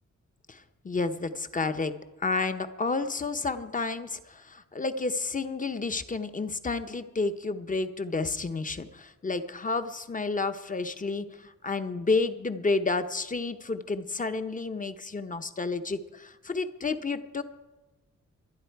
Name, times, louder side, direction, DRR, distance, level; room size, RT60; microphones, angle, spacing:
voice 1, 0.5-1.9 2.2-17.4, left 3 dB, 25° left, 9 dB, 0.9 m, -30 dB
23.5 x 10.0 x 4.7 m, 1.1 s
wide cardioid pair, 120°, 29 cm